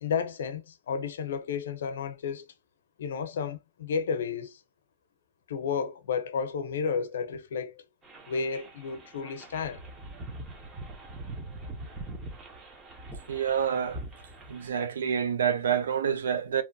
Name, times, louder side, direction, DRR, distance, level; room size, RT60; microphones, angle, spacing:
voice 1, 0.0-2.5 3.0-4.6 5.5-7.8 8.3-9.8, left 6 dB, 75° left, 0.6 m, -32 dB
sound 1, 8.0-14.7, right 2 dB, 20° right, 0.7 m, -43 dB
voice 2, 13.3-14.0 14.5-16.6, right 8 dB, 90° right, 0.6 m, -27 dB
2.9 x 2.2 x 2.6 m
hypercardioid pair, 145°, 0 cm